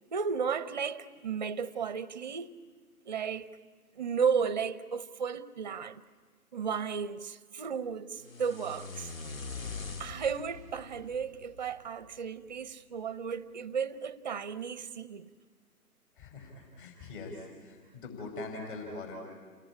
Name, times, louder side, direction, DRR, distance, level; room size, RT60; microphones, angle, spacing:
voice 1, 0.1-2.5 3.0-3.5 4.0-6.0 6.5-9.1 10.0-15.3, right 6 dB, 30° right, 0.7 m, -34 dB
sound 1, 8.2-12.3, left 4 dB, 60° left, 2.3 m, -43 dB
voice 2, 16.2-19.2, left 3 dB, 35° left, 5.1 m, -42 dB
30.0 x 18.5 x 9.8 m
figure-of-eight pair, 145°, 46 cm